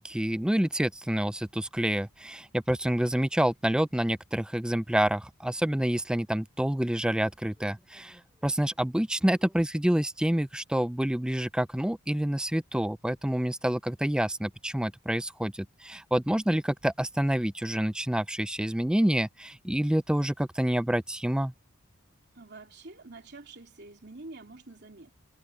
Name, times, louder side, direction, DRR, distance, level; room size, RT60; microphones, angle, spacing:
voice 1, 0.0-21.5, right 1 dB, 5° right, 0.3 m, -28 dB
voice 2, 22.3-25.1, right 2 dB, 50° right, 3.1 m, -47 dB
head